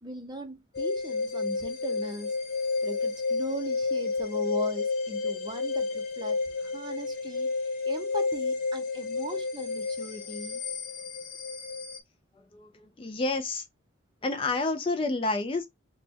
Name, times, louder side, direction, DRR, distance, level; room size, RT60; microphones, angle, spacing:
voice 1, 0.0-2.4 2.8-7.5 7.9-10.6, right 1 dB, 20° right, 0.6 m, -39 dB
sound 1, 0.7-12.0, left 4 dB, 45° left, 0.7 m, -31 dB
voice 2, 12.4-13.6 14.2-15.7, left 3 dB, 25° left, 0.4 m, -29 dB
3.2 x 2.2 x 4.2 m
head